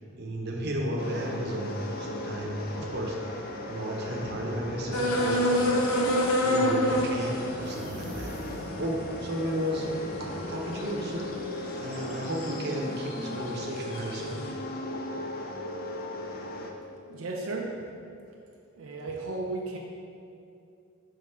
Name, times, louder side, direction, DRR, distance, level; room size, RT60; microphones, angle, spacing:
voice 1, 0.2-3.4 3.7-5.5 6.3-8.4 8.8-9.9 10.2-11.5 11.8-14.4, right 1 dB, 50° right, -1 dB, 0.8 m, -33 dB
sound 1, 1.0-16.7, left 1 dB, 45° left, 0.5 m, -37 dB
sound 2, 4.9-11.3 11.9-12.7 13.1-14.2, equal, 90° left, 0.8 m, -28 dB
sound 3, 7.5-9.0, right 1 dB, 25° right, 0.5 m, -43 dB
voice 2, 17.1-17.8 18.8-19.8, right 2 dB, 85° right, 0 dB, 0.5 m, -34 dB
5.4 x 3.6 x 5.6 m, 2.5 s
head